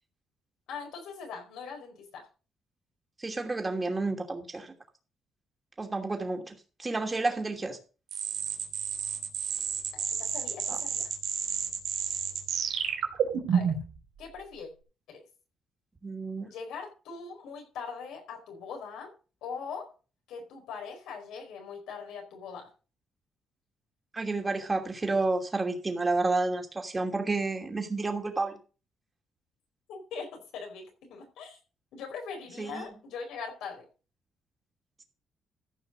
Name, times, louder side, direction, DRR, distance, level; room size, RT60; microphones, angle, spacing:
voice 1, 0.7-2.3 9.9-11.1 13.5-13.7 14.2-14.7 15.1-15.2 16.4-19.1 19.4-19.9 20.3-22.7 29.9-31.6 31.9-33.9, left 5 dB, 90° left, 2 dB, 4.6 m, -41 dB
voice 2, 3.2-4.7 5.8-7.8 10.7-10.8 16.0-16.5 24.1-28.6 32.6-32.8, right 3 dB, 25° right, 4 dB, 2.7 m, -30 dB
sound 1, 8.1-13.9, right 8 dB, 80° right, 2.7 m, -30 dB
14.5 x 5.7 x 6.2 m, 0.35 s
cardioid pair, 90°, 0 cm